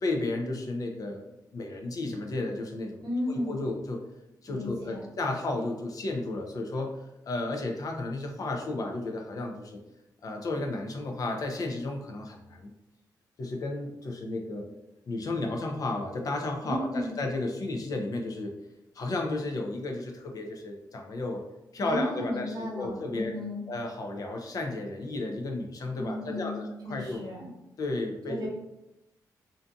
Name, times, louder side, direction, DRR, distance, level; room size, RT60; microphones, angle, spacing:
voice 1, 0.0-1.3 1.5-3.0 3.3-4.0 4.4-6.9 7.2-9.8 10.2-12.7 13.4-14.7 15.1-18.5 18.9-21.4 21.7-23.3 23.7-27.2 27.8-28.5, left 2 dB, 50° left, 2 dB, 0.5 m, -33 dB
voice 2, 3.0-3.6 4.5-5.0 16.6-17.2 21.8-23.6 26.0-27.5 28.3-28.5, left 1 dB, 60° right, -2 dB, 0.8 m, -34 dB
2.6 x 2.5 x 2.3 m, 0.90 s
cardioid pair, 100°, 7 cm